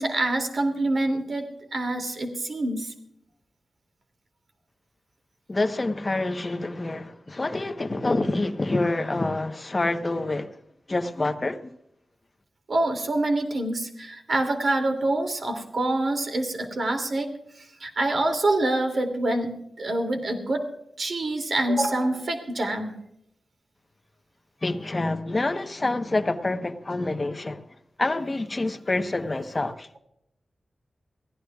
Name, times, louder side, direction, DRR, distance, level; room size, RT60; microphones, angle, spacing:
voice 1, 0.0-2.9 12.7-17.3 17.8-20.7 21.0-22.9, right 2 dB, 55° right, 2.6 m, -26 dB
voice 2, 5.5-10.5 10.9-11.7 24.6-27.6 28.0-29.9, left 2 dB, 30° left, 1.0 m, -27 dB
23.0 x 16.0 x 2.4 m
wide cardioid pair, 130°, 0 cm